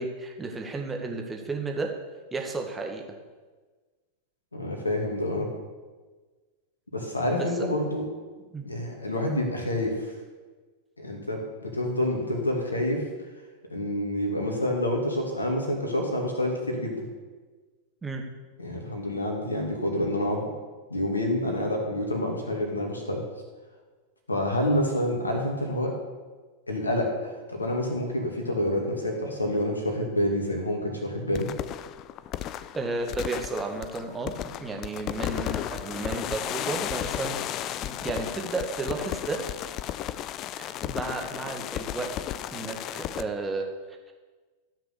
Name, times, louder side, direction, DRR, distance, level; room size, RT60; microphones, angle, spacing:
voice 1, 0.0-1.9 2.3-3.0 7.3-7.7 8.5-8.7 18.0-18.2 32.7-39.4 40.6-42.1 42.5-44.1, right 3 dB, 15° right, 2 dB, 1.7 m, -33 dB
voice 2, 4.5-5.5 6.9-8.0 8.7-10.1 11.0-13.0 13.7-17.1 18.6-20.5 20.9-23.2 24.3-25.9 26.7-31.5, left 1 dB, 80° left, 1 dB, 2.4 m, -28 dB
sound 1, 31.3-43.2, left 12 dB, 35° left, 0.5 m, -34 dB
13.5 x 6.0 x 6.9 m, 1.3 s
figure-of-eight pair, 90°, 0 cm